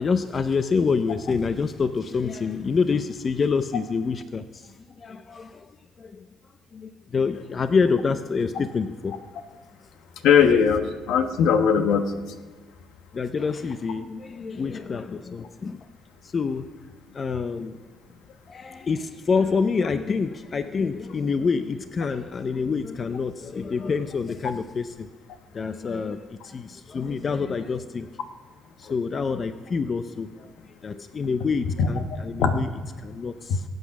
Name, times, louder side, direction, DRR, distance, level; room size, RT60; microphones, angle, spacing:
voice 1, 0.0-5.7 6.0-6.3 6.7-9.2 13.1-15.9 16.2-16.7 17.1-17.8 18.5-25.1 25.5-28.1 28.8-30.5 30.8-32.7 33.0-33.6, left 5 dB, 35° left, 11 dB, 0.6 m, -27 dB
voice 2, 10.2-12.1 28.8-28.9 31.8-31.9 32.4-32.6 33.5-33.6, left 7 dB, 75° left, 8 dB, 1.2 m, -19 dB
22.5 x 8.0 x 5.9 m, 1.4 s
cardioid pair, 120°, 0 cm